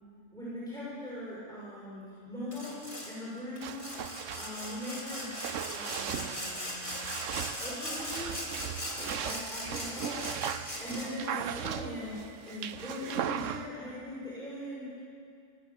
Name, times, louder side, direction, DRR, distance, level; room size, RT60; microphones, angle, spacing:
voice 1, 0.3-4.0 4.3-5.4 5.7-6.9 7.6-8.4 8.8-15.0, left 1 dB, 5° left, -9 dB, 6.4 m, -41 dB
Sawing, 2.5-3.1 3.6-11.3, equal, 20° left, 3.6 m, -39 dB
sound 1, 3.6-13.7, right 9 dB, 70° right, 1.1 m, -38 dB
23.5 x 19.0 x 7.4 m, 2.3 s
omnidirectional pair, 1.4 m